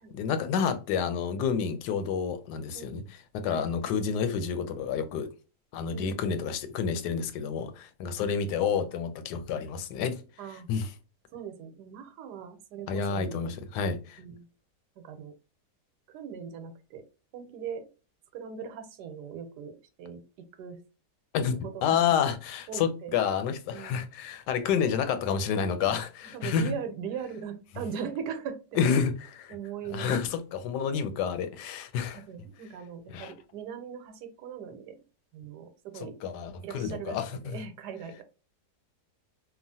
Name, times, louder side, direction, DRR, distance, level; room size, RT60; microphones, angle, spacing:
voice 1, 0.1-3.0 3.3-5.3 5.7-10.2 10.7-10.9 12.9-14.2 21.3-26.7 28.8-29.5 29.9-32.2 33.1-33.3 36.2-37.6, left 7 dB, 85° left, 1.2 m, -29 dB
voice 2, 2.7-3.1 3.5-3.7 5.9-6.2 8.1-8.2 10.4-10.7 11.3-13.7 14.2-14.5 15.0-15.3 16.1-17.0 17.3-17.9 18.3-20.8 21.6-22.0 22.7-23.2 23.7-24.0 26.2-28.8 29.5-30.4 32.1-35.0 35.3-36.1 36.6-38.2, right 7 dB, 80° right, 1.2 m, -40 dB
3.0 x 2.4 x 2.6 m
omnidirectional pair, 1.7 m